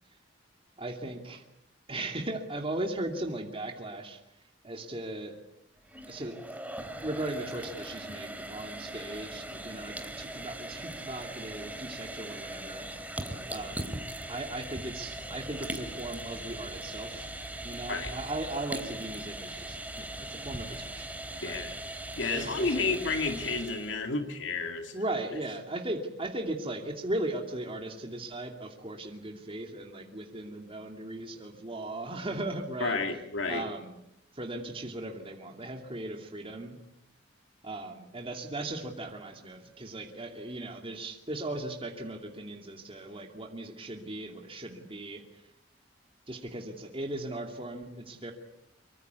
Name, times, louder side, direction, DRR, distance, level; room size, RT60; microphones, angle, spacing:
voice 1, 0.8-1.4 1.9-4.2 4.6-5.3 6.1-6.4 7.0-13.2 13.5-13.9 14.3-17.3 17.6-21.1 21.4-21.6 22.3-22.9 24.9-33.0 33.5-34.0 34.3-36.8 37.6-45.2 46.3-48.3, right 1 dB, 30° right, 3 dB, 2.6 m, -37 dB
sound 1, 5.8-24.0, right 1 dB, 10° right, 3.0 m, -40 dB
voice 2, 21.4-21.7 22.2-24.9 32.8-33.6, left 3 dB, 70° left, 5 dB, 2.4 m, -31 dB
25.0 x 23.5 x 8.2 m, 0.82 s
head